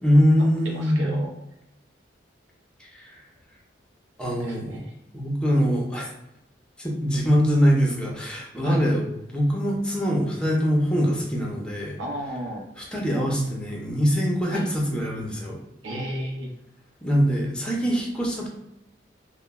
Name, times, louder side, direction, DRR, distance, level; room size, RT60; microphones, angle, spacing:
voice 1, 0.0-1.2 2.8-3.2 4.2-4.8 5.1-6.1 6.8-9.1 9.3-12.0 12.8-15.6 17.0-18.5, equal, 5° left, -2 dB, 0.5 m, -23 dB
voice 2, 0.6-1.3 4.3-4.9 8.6-8.8 12.0-12.6 14.5-14.7 15.8-16.5, right 1 dB, 80° right, -1 dB, 0.6 m, -33 dB
2.9 x 2.0 x 2.2 m, 0.83 s
head